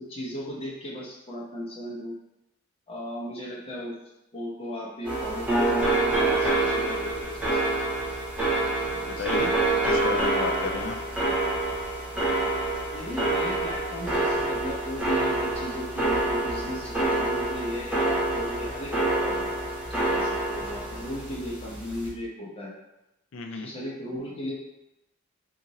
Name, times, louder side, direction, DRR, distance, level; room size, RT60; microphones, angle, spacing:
voice 1, 0.0-2.2 2.9-3.9 4.3-7.9 8.9-9.5 12.9-19.5 19.9-22.7 23.5-24.5, equal, 30° left, -4 dB, 0.8 m, -36 dB
sound 1, 5.0-22.1, right 2 dB, 5° right, 0.8 m, -27 dB
voice 2, 9.0-9.5 9.8-11.0 23.3-23.7, left 4 dB, 70° left, 4 dB, 0.4 m, -33 dB
2.9 x 2.5 x 4.0 m, 0.92 s
head